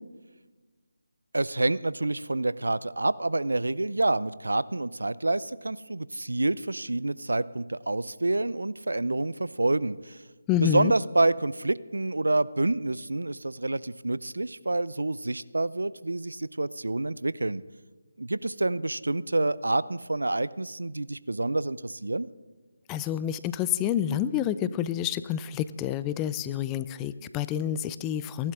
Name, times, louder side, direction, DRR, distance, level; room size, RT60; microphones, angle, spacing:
voice 1, 1.3-10.2 10.6-17.6 18.2-22.3, right 2 dB, 80° right, 18 dB, 0.5 m, -28 dB
voice 2, 10.5-10.9 22.9-28.5, left 10 dB, 15° left, 14 dB, 0.4 m, -28 dB
28.0 x 12.0 x 3.7 m, 1.3 s
figure-of-eight pair, 155°, 0 cm